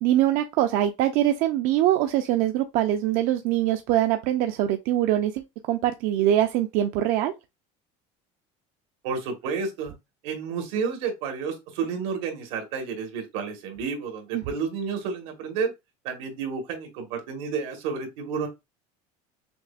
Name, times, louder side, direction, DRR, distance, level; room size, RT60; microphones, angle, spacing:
voice 1, 0.0-7.3 14.3-14.4, right 12 dB, 60° right, 0.4 m, -23 dB
voice 2, 9.0-9.9 10.2-15.7 16.0-18.5, right 5 dB, 80° right, 1.3 m, -30 dB
5.9 x 2.1 x 2.3 m
cardioid pair, 160°, 16 cm